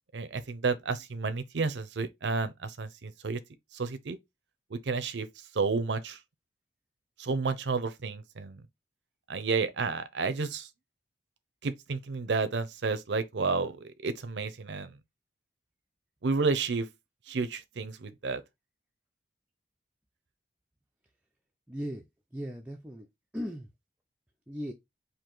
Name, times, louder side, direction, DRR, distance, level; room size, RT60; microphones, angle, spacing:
voice 1, 0.1-3.4 3.7-4.2 4.7-5.3 5.5-6.2 7.2-8.6 9.3-10.7 11.6-15.0 16.2-16.9 17.3-18.4, right 4 dB, 70° right, 0.6 m, -31 dB
voice 2, 21.7-22.0 22.3-23.1 23.3-23.7 24.5-24.7, equal, 5° right, 0.4 m, -37 dB
4.5 x 2.7 x 3.7 m
head